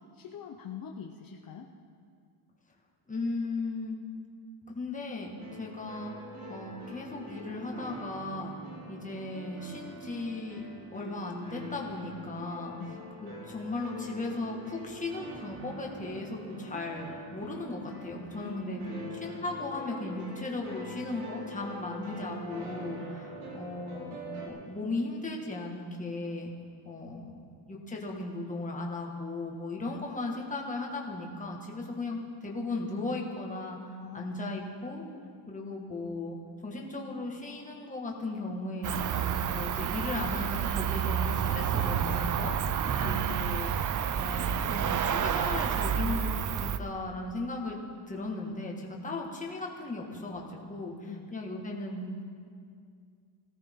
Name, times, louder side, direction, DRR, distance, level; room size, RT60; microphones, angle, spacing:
voice 1, 0.0-1.7 12.8-13.0 18.4-19.1 30.0-30.1 34.0-34.4 42.9-43.9 51.1-51.3, left 7 dB, 45° left, 1 dB, 0.9 m, -44 dB
voice 2, 3.1-4.0 4.7-6.1 6.5-8.5 8.9-10.6 10.9-12.7 13.2-18.8 19.2-26.5 26.8-27.3 27.7-33.8 34.1-35.0 35.5-36.4 36.6-39.2 39.5-42.5 43.0-43.7 44.1-47.8 48.1-52.2, left 2 dB, 15° left, -1 dB, 1.8 m, -36 dB
sound 1, 5.4-24.5, equal, 80° right, 3.5 m, -44 dB
Cricket, 38.8-46.8, right 8 dB, 40° right, 0.5 m, -29 dB
20.0 x 16.5 x 3.7 m, 2.3 s
cardioid pair, 165°, 48 cm